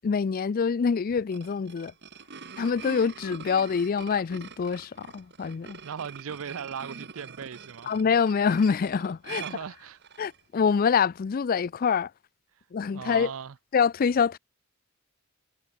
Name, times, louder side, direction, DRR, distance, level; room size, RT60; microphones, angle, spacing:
voice 1, 0.0-1.9 2.6-5.8 7.9-9.4 10.2-12.1 12.7-13.3 13.7-14.4, left 6 dB, 40° left, 0.4 m, -25 dB
sound 1, 1.1-10.4, right 6 dB, 50° right, 1.8 m, -44 dB
voice 2, 5.8-7.9 9.4-10.0 12.9-13.5, right 7 dB, 65° right, 0.5 m, -38 dB
head